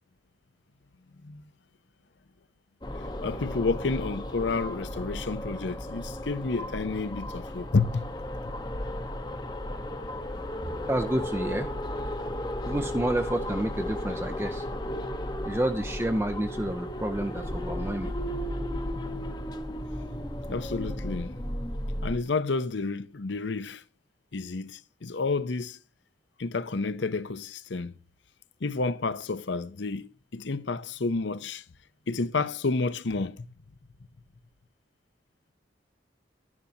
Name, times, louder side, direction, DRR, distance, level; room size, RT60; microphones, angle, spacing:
sound 1, 2.8-22.2, left 1 dB, 20° left, 0.8 m, -34 dB
voice 1, 3.2-8.1 20.5-21.3 22.0-23.8 24.3-25.8 26.4-28.0 28.6-31.6 32.1-33.5, left 3 dB, 80° left, 0.7 m, -30 dB
voice 2, 10.9-11.7 12.7-14.7 15.5-18.1, right 1 dB, 15° right, 0.5 m, -29 dB
11.0 x 11.0 x 2.8 m
head